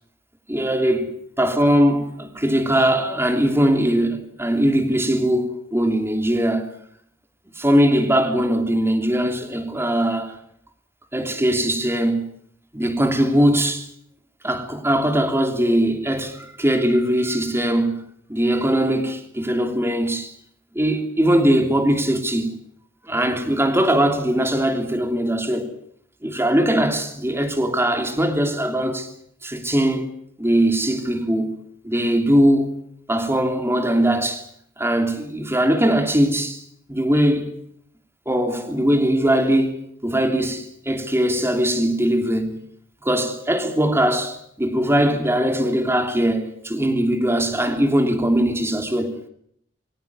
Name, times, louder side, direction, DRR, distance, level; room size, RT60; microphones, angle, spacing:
voice 1, 0.5-6.7 7.6-10.4 11.1-12.3 12.7-13.9 14.4-20.3 20.7-22.5 23.0-25.7 26.2-29.1 29.4-30.0 30.4-32.7 33.1-34.4 34.8-36.6 36.9-37.6 38.3-42.7 43.0-49.2, right 1 dB, 15° right, 3.0 m, -20 dB
23.5 x 18.0 x 9.6 m
head